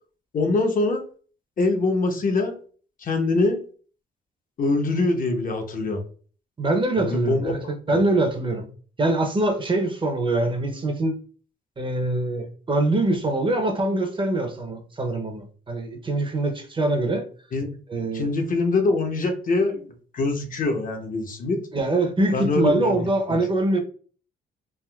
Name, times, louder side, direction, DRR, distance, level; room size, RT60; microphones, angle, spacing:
voice 1, 0.3-1.0 1.6-2.6 3.0-3.6 4.6-6.0 7.0-7.5 17.5-17.7 18.1-19.8 20.1-21.6 22.3-23.4, left 3 dB, 45° left, 0.7 m, -23 dB
voice 2, 6.6-8.7 9.0-11.1 11.8-17.2 17.9-18.3 21.7-23.8, right 2 dB, 25° right, 0.6 m, -24 dB
3.5 x 2.4 x 2.3 m
cardioid pair, 90°, 20 cm